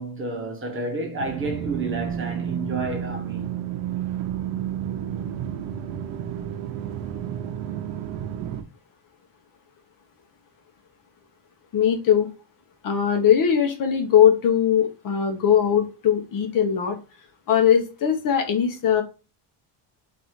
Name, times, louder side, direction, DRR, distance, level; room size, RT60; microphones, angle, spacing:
voice 1, 0.0-3.5, right 3 dB, 25° right, 0.9 m, -30 dB
sound 1, 1.2-8.6, right 9 dB, 85° right, 0.7 m, -31 dB
voice 2, 11.7-12.3 12.8-17.0 17.5-19.0, left 8 dB, 45° left, 0.8 m, -20 dB
3.9 x 2.6 x 4.5 m
cardioid pair, 175°, 47 cm